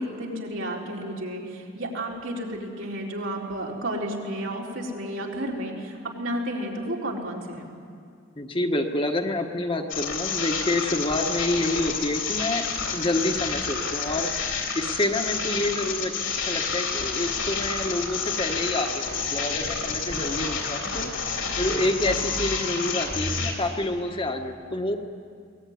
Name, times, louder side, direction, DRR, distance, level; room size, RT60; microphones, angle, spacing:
voice 1, 0.0-7.7, right 1 dB, 80° right, -2 dB, 4.1 m, -32 dB
voice 2, 8.4-16.1 16.4-25.0, left 1 dB, 25° left, 4 dB, 1.3 m, -28 dB
sound 1, 9.9-23.5, left 5 dB, 80° left, 3.6 m, -29 dB
22.0 x 19.0 x 9.5 m, 2.2 s
head